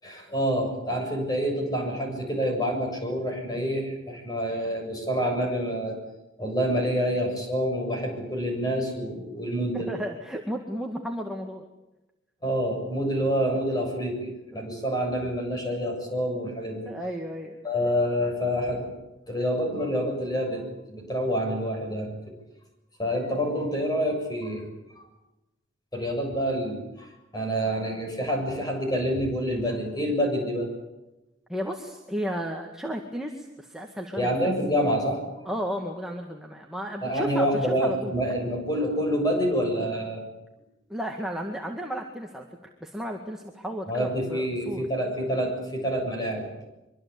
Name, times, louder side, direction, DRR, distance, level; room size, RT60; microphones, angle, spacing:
voice 1, 0.0-6.0 6.4-9.9 12.4-16.9 17.6-18.9 19.3-22.2 23.0-24.6 25.9-27.1 27.3-30.7 34.2-35.2 37.0-40.2 43.9-46.5, equal, 20° left, 2 dB, 7.3 m, -27 dB
voice 2, 9.7-11.6 14.5-14.6 16.9-17.6 31.5-34.6 35.5-38.1 40.9-42.5 42.8-44.8, equal, ahead, 1 dB, 2.0 m, -33 dB
24.0 x 24.0 x 8.6 m, 0.97 s
head